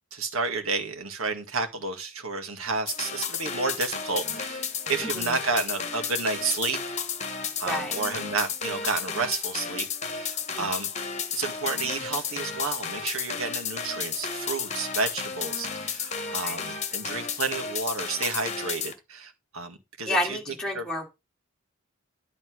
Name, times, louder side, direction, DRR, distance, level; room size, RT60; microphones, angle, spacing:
voice 1, 0.1-7.0 7.6-9.9 10.1-10.9 11.3-20.4 20.7-20.9, right 4 dB, 90° right, 2.0 m, -31 dB
sound 1, 2.9-18.9, left 6 dB, 35° left, 1.4 m, -33 dB
voice 2, 7.6-8.0 10.5-10.7 16.4-16.6 20.1-21.1, left 1 dB, 5° left, 2.2 m, -30 dB
11.5 x 4.0 x 6.2 m
head